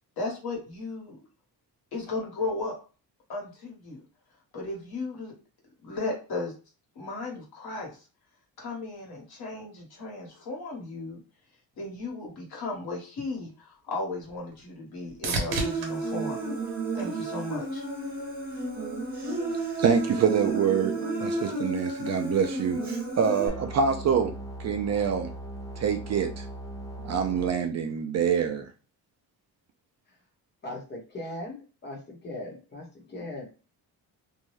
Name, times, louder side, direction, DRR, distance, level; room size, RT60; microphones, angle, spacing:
voice 1, 0.2-1.2 1.9-2.8 3.3-4.0 4.5-5.3 5.8-6.5 6.9-8.1 8.6-11.2 11.8-16.4 16.9-17.9, left 3 dB, 65° left, -1 dB, 1.4 m, -35 dB
sound 1, 13.5-17.7 18.2-18.8 26.7-26.8, right 3 dB, 75° right, 0.9 m, -37 dB
Human voice, 15.5-23.5, right 3 dB, 20° right, 1.0 m, -32 dB
voice 2, 19.8-24.3 24.6-25.3 25.8-26.4 27.0-28.7, right 7 dB, 45° right, 5 dB, 0.4 m, -26 dB
sound 2, 23.4-27.5, right 1 dB, 10° left, 0.5 m, -39 dB
voice 3, 30.6-33.5, left 1 dB, 25° left, 0 dB, 1.0 m, -39 dB
2.7 x 2.2 x 3.1 m, 0.36 s
cardioid pair, 150°, 40 cm